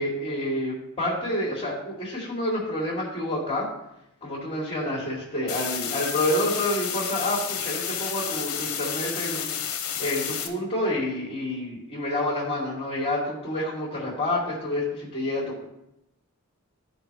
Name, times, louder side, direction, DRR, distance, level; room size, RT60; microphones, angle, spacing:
voice 1, 0.0-3.7 4.2-9.5 10.0-15.6, left 1 dB, 30° left, -8 dB, 2.3 m, -28 dB
sound 1, 5.5-10.5, left 8 dB, 70° left, 1.1 m, -31 dB
13.5 x 5.1 x 3.3 m, 0.84 s
head